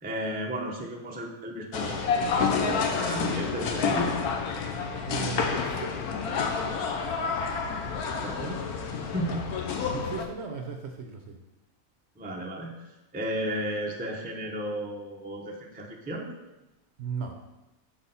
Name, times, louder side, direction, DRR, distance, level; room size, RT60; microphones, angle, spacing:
voice 1, 0.0-4.2 8.2-9.5 12.2-12.9 13.1-16.3, right 1 dB, 10° right, 0 dB, 0.4 m, -34 dB
sound 1, 1.7-10.2, left 5 dB, 85° left, 1.2 m, -29 dB
voice 2, 5.0-6.0 9.9-11.4 17.0-17.4, right 5 dB, 60° right, 3 dB, 0.8 m, -36 dB
5.9 x 4.2 x 5.4 m, 1.0 s
omnidirectional pair, 1.6 m